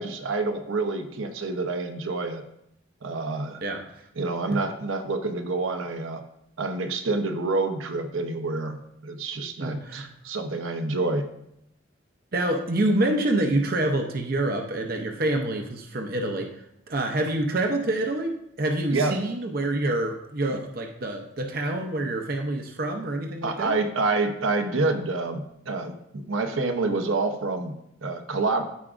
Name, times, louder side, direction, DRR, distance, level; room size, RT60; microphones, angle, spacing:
voice 1, 0.0-2.4 3.0-3.6 4.2-6.2 6.6-11.2 18.9-19.2 20.5-20.6 23.4-28.6, right 3 dB, 80° right, 6 dB, 0.8 m, -28 dB
voice 2, 9.6-10.1 12.3-16.5 16.9-23.7, right 1 dB, 45° right, 3 dB, 0.7 m, -27 dB
13.5 x 4.8 x 2.5 m, 0.78 s
head